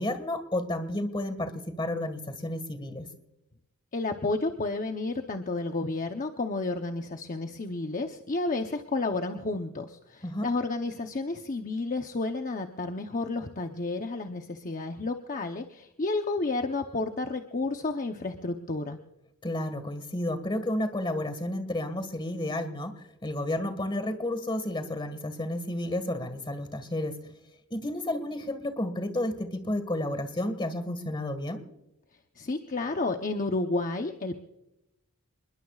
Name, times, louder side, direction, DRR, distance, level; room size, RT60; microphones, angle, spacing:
voice 1, 0.0-3.1 10.2-10.5 19.4-27.3 27.7-31.6, left 1 dB, 20° left, 10 dB, 1.7 m, -31 dB
voice 2, 3.9-19.0 32.4-34.4, left 3 dB, 35° left, 5 dB, 0.8 m, -31 dB
28.0 x 21.5 x 2.4 m, 0.91 s
head